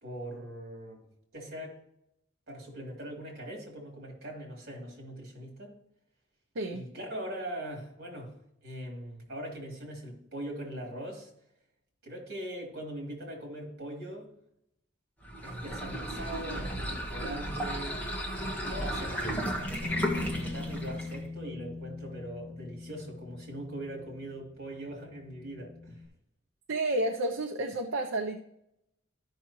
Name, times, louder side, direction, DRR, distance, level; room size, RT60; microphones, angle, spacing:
voice 1, 0.0-1.0 1.3-1.8 2.5-5.8 6.7-8.3 8.6-11.3 12.0-14.3 15.4-18.0 18.6-26.0, right 1 dB, 55° right, -1 dB, 3.0 m, -41 dB
voice 2, 6.5-6.9 26.7-28.4, right 2 dB, 75° right, 3 dB, 0.6 m, -31 dB
sound 1, 15.2-21.3, equal, 10° left, 1.4 m, -34 dB
Bass guitar, 19.8-26.1, left 3 dB, 65° left, 1.6 m, -42 dB
13.0 x 5.8 x 3.0 m, 0.78 s
head